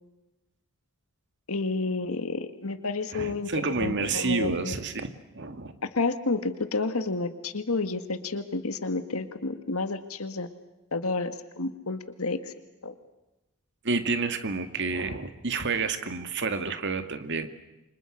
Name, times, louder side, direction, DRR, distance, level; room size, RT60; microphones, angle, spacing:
voice 1, 1.5-4.8 6.0-10.5 10.9-12.5 12.8-12.9, left 3 dB, 70° left, 9 dB, 1.8 m, -30 dB
voice 2, 3.1-5.7 13.8-17.5, right 4 dB, 55° right, 8 dB, 2.2 m, -29 dB
29.5 x 26.0 x 6.5 m, 0.98 s
head